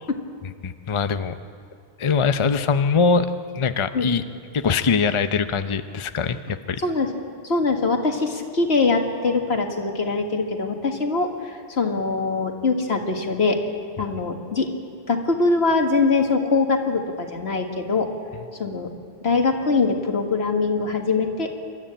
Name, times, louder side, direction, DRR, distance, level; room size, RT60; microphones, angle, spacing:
voice 1, 0.6-1.4 2.0-3.3 3.5-4.2 4.5-6.8, left 5 dB, 35° left, 10 dB, 0.6 m, -22 dB
voice 2, 7.4-13.6 14.0-14.7 15.1-18.1 18.6-18.9 19.2-21.5, left 3 dB, 80° left, 3 dB, 2.1 m, -22 dB
28.5 x 13.0 x 8.9 m, 2.2 s
omnidirectional pair, 1.1 m